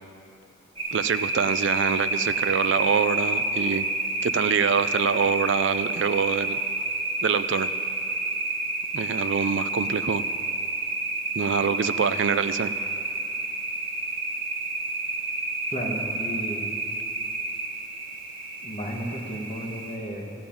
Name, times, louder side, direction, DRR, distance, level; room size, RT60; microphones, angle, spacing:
sound 1, 0.8-20.0, right 2 dB, 25° right, 1.5 m, -29 dB
voice 1, 0.9-3.9 4.2-6.6 7.2-7.7 8.9-10.2 11.4-12.7, right 6 dB, 60° right, 13 dB, 0.4 m, -25 dB
voice 2, 15.7-16.7 18.6-20.3, equal, 30° left, -1 dB, 1.6 m, -33 dB
16.0 x 5.8 x 8.7 m, 2.7 s
head